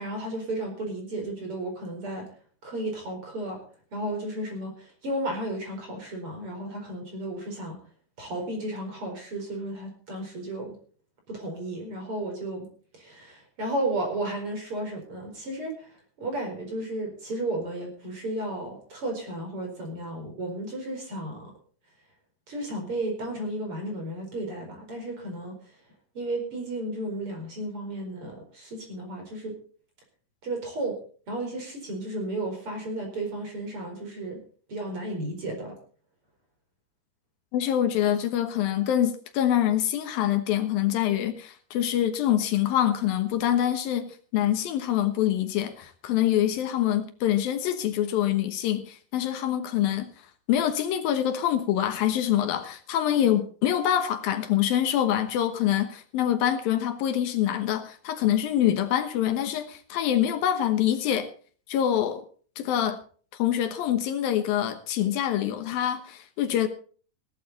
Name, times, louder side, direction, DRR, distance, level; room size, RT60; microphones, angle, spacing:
voice 1, 0.0-2.3 2.6-3.6 3.9-7.8 8.2-10.7 11.3-12.7 12.9-15.9 16.2-21.4 22.5-25.6 26.2-29.6 30.4-31.0 31.3-34.4 34.7-35.7, right 1 dB, 30° right, 5.2 m, -33 dB
voice 2, 37.5-50.1 50.5-61.3 61.7-62.2 62.6-63.0 63.3-66.7, left 11 dB, 70° left, 2.7 m, -25 dB
17.5 x 12.0 x 4.2 m
omnidirectional pair, 4.8 m